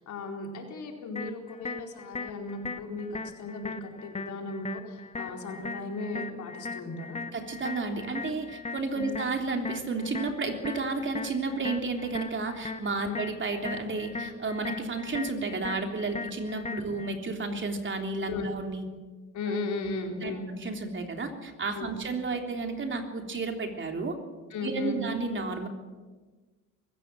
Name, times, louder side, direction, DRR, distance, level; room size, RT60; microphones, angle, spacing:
voice 1, 0.0-7.2 8.9-9.1 13.0-13.2 18.3-18.5 19.3-20.5 21.7-21.9 24.5-25.0, left 3 dB, 75° left, 2 dB, 4.4 m, -36 dB
sound 1, 1.2-17.2, left 3 dB, 20° left, 1.2 m, -39 dB
voice 2, 7.3-18.8 19.5-19.6 20.2-24.2 24.6-25.7, right 3 dB, 40° right, 4 dB, 3.4 m, -32 dB
23.5 x 15.5 x 7.6 m, 1.3 s
cardioid pair, 90°, 30 cm